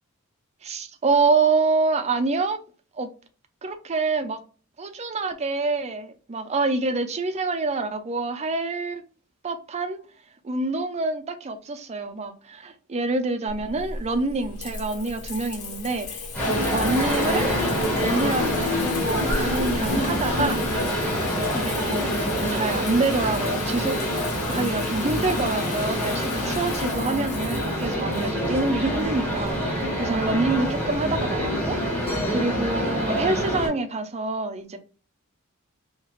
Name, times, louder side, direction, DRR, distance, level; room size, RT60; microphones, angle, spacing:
voice 1, 0.6-2.6 3.0-3.1 3.6-4.4 4.8-9.0 9.4-10.0 10.4-17.5 18.0-20.6 21.5-23.9 24.5-31.8 32.3-34.8, right 3 dB, 30° right, 0.5 m, -26 dB
Water tap faucet / Bathtub (filling or washing) / Trickle dribble, 13.5-32.4, left 4 dB, 75° left, 0.8 m, -34 dB
sound 1, 16.3-33.7, equal, 5° left, 1.7 m, -26 dB
4.3 x 2.9 x 2.4 m
head